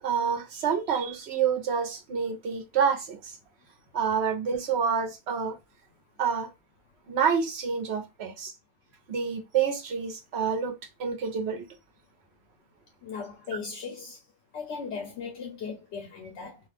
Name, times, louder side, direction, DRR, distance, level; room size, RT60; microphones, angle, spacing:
voice 1, 0.0-3.3 3.9-5.6 6.2-6.5 7.1-8.5 9.1-10.7 11.0-11.7, right 6 dB, 65° right, 1.0 m, -28 dB
voice 2, 13.0-14.2 14.5-16.6, left 5 dB, 70° left, 0.8 m, -38 dB
2.4 x 2.3 x 3.2 m
omnidirectional pair, 1.2 m